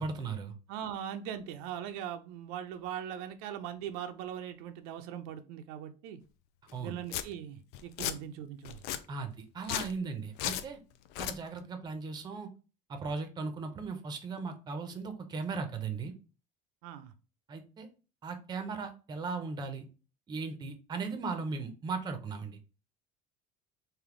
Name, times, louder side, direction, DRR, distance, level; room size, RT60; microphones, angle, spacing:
voice 1, 0.0-0.5 6.7-7.0 9.1-10.8 11.2-12.5 12.9-16.1 17.5-17.9 18.2-19.9 20.3-22.6, right 4 dB, 25° right, 7 dB, 0.6 m, -37 dB
voice 2, 0.7-6.2 6.8-8.8 16.8-17.1, right 9 dB, 85° right, 7 dB, 0.6 m, -40 dB
Domestic sounds home sounds, 6.7-6.8 7.1-7.2 7.7-8.2 8.7-9.0 9.6-9.9 10.4-10.7 11.1-11.4, left 11 dB, 65° left, 0.4 m, -34 dB
3.4 x 2.6 x 3.7 m, 0.33 s
cardioid pair, 145°, 18 cm